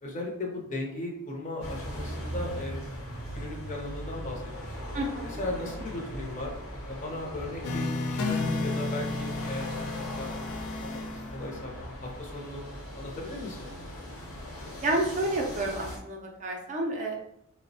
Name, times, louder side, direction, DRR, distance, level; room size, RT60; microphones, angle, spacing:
voice 1, 0.0-2.8 3.3-4.9 5.2-6.5 6.9-11.7 12.2-12.6 12.9-13.7, left 1 dB, 35° left, -1 dB, 0.6 m, -37 dB
sound 1, 1.6-16.0, equal, 70° left, 0.9 m, -39 dB
voice 2, 4.9-5.4 5.7-5.8 14.8-17.2, right 1 dB, 35° right, 0 dB, 0.4 m, -30 dB
sound 2, 7.6-11.9, left 3 dB, 85° left, 0.4 m, -32 dB
3.2 x 2.0 x 2.6 m, 0.78 s
head